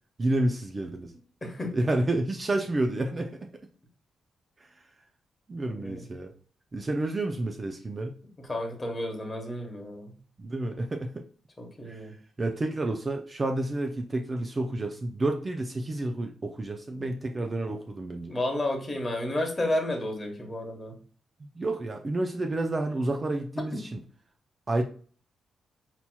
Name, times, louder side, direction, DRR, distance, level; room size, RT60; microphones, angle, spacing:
voice 1, 0.2-1.1 1.7-3.5 5.5-6.3 6.7-8.1 10.4-11.2 11.9-12.1 12.4-18.3 21.6-24.0 24.7-24.8, right 2 dB, 25° right, 4 dB, 0.4 m, -30 dB
voice 2, 1.4-1.7 5.7-6.1 8.4-10.1 11.6-12.1 17.0-17.1 18.3-21.0 23.7-23.8, left 1 dB, 20° left, 2 dB, 1.0 m, -32 dB
5.8 x 2.8 x 2.2 m, 0.43 s
cardioid pair, 130°, 0 cm